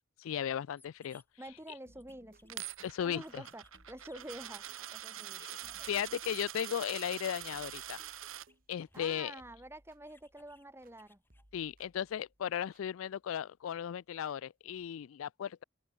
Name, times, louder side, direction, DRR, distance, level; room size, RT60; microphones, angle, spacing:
voice 1, 0.2-1.2 2.8-3.4 5.5-8.0 8.7-9.3 11.5-15.6, left 9 dB, 75° left, 0.3 m, -36 dB
sound 1, 0.8-12.1 12.5-14.8, left 2 dB, 10° left, 7.1 m, -68 dB
voice 2, 1.4-2.6 3.0-5.4 8.9-11.2, right 1 dB, 10° right, 2.3 m, -48 dB
sound 2, 1.9-11.0 11.3-12.9 13.7-13.8, right 1 dB, 40° right, 4.5 m, -66 dB
Coin (dropping), 2.5-8.5, right 11 dB, 80° right, 2.1 m, -45 dB
open air
head